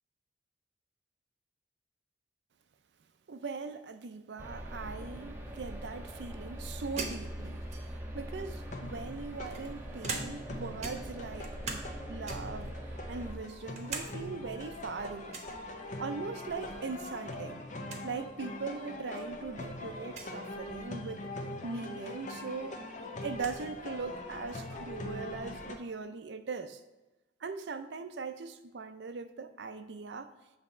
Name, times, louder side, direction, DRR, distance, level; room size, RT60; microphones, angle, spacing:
voice 1, 3.3-7.6 8.1-11.8 12.1-12.7 13.1-15.4 16.0-17.6 18.0-21.3 21.6-22.8 23.2-26.8 27.4-30.3, right 4 dB, 75° right, 0.5 m, -40 dB
sound 1, 4.4-13.3, equal, 15° right, 0.8 m, -42 dB
sound 2, 7.0-8.1 8.9-10.5 10.8-11.9 12.2-12.6 13.1-14.1 14.4-14.5 15.3-15.6 17.0-17.3 17.6-17.7 17.9-18.1 18.9-19.0 20.0-20.3 22.0-22.1 22.4-23.6, right 4 dB, 40° right, 0.9 m, -41 dB
sound 3, 8.6-25.8, left 1 dB, 45° left, 0.7 m, -43 dB
7.2 x 3.5 x 5.5 m
head